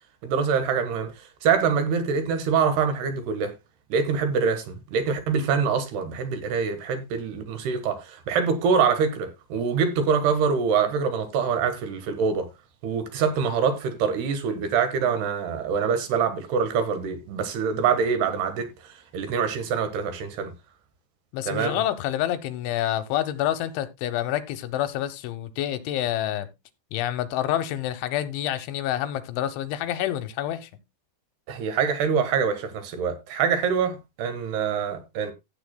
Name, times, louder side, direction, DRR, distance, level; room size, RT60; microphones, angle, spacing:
voice 1, 0.2-1.1 1.4-3.5 3.9-12.5 12.8-20.5 21.5-21.8 31.5-35.3, right 6 dB, 65° right, 3.2 m, -25 dB
voice 2, 21.3-26.5 26.9-30.7, left 12 dB, 85° left, 3.4 m, -28 dB
15.5 x 8.1 x 2.2 m
omnidirectional pair, 5.3 m